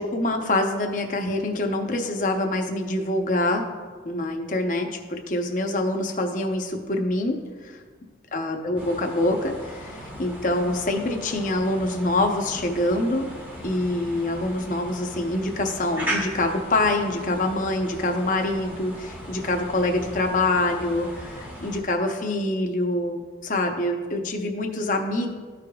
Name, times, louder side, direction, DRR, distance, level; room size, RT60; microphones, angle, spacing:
voice 1, 0.0-3.6 4.0-7.8 8.3-13.3 13.6-25.3, left 2 dB, 45° left, 3 dB, 0.8 m, -25 dB
sound 1, 8.8-21.8, equal, 10° right, 1.0 m, -38 dB
14.0 x 5.0 x 2.3 m, 1.5 s
head